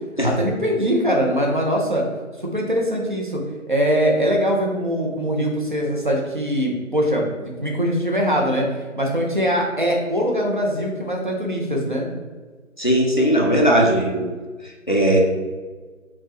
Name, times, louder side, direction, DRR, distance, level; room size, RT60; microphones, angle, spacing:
voice 1, 0.2-2.0 2.4-7.2 7.6-8.7 9.0-12.1, equal, 40° right, 0 dB, 0.5 m, -22 dB
voice 2, 12.8-14.3 14.6-15.2, right 1 dB, 40° left, -1 dB, 0.4 m, -18 dB
4.5 x 2.2 x 2.9 m, 1.4 s
figure-of-eight pair, 170°, 40 cm